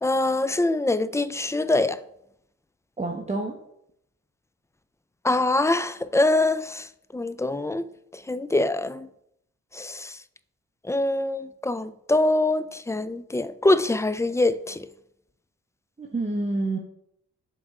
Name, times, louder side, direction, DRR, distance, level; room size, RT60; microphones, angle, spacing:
voice 1, 0.0-2.0 5.2-6.8 7.1-7.9 8.3-9.1 9.7-10.1 10.9-14.9, left 2 dB, 10° left, 0.3 m, -24 dB
voice 2, 3.0-3.6 16.0-16.8, right 2 dB, 20° right, 1.0 m, -28 dB
7.0 x 4.2 x 3.6 m
cardioid pair, 60°, 31 cm